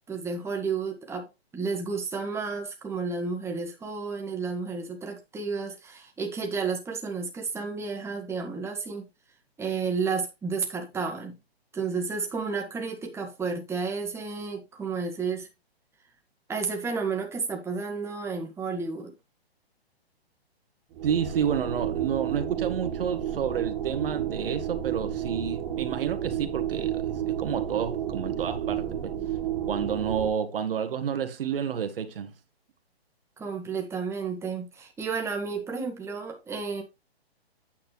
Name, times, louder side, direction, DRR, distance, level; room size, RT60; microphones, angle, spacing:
voice 1, 0.1-1.3 1.5-9.1 9.6-11.4 11.7-15.5 16.5-19.1 33.4-36.8, right 5 dB, 10° right, 1.7 m, -31 dB
sound 1, 20.9-30.3, right 10 dB, 30° right, 1.6 m, -31 dB
voice 2, 21.0-29.1 29.7-32.3, right 8 dB, 60° right, 1.8 m, -30 dB
9.3 x 7.2 x 3.3 m
hypercardioid pair, 135°, 32 cm